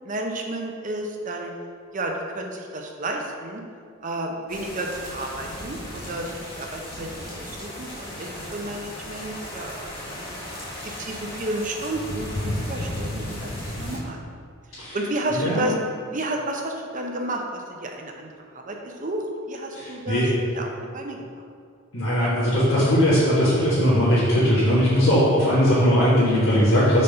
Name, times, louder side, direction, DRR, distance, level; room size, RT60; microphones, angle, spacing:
voice 1, 0.0-1.5 1.9-3.6 4.0-10.4 10.8-14.2 14.9-15.7 16.1-18.3 18.5-20.2 20.5-21.2 22.2-22.5, right 1 dB, 40° right, 2 dB, 0.7 m, -31 dB
sound 1, 4.5-14.0, left 1 dB, 25° left, 1.5 m, -35 dB
voice 2, 15.4-15.7 19.7-20.3 21.9-27.0, equal, 80° left, -11 dB, 1.6 m, -19 dB
5.2 x 4.2 x 5.3 m, 2.1 s
head